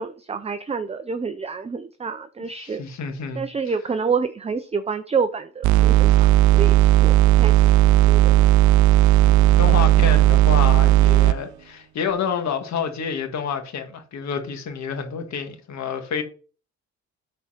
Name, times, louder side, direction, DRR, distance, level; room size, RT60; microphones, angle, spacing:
voice 1, 0.0-2.8 3.3-7.6 8.1-8.5, right 5 dB, 20° right, 0.6 m, -28 dB
voice 2, 2.6-3.4 9.2-16.2, left 6 dB, 65° left, 1.7 m, -29 dB
sound 1, 5.6-11.4, right 14 dB, 70° right, 0.5 m, -15 dB
8.8 x 4.3 x 5.6 m
cardioid pair, 90°, 30 cm